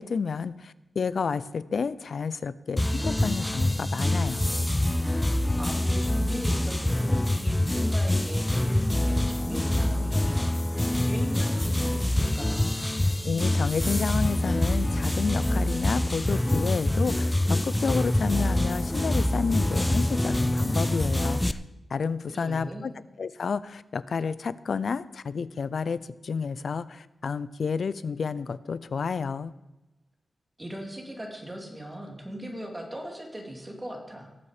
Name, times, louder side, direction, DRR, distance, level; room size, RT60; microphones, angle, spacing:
voice 1, 0.0-4.5 13.2-21.6 21.9-22.9 23.2-29.5, left 5 dB, 65° left, 16 dB, 0.5 m, -30 dB
sound 1, 2.8-21.5, left 1 dB, 10° left, 0.5 m, -25 dB
voice 2, 5.3-12.7 22.3-22.9 30.6-34.3, equal, 15° right, 1 dB, 2.4 m, -39 dB
18.5 x 7.0 x 4.9 m, 1.0 s
wide cardioid pair, 105°, 0 cm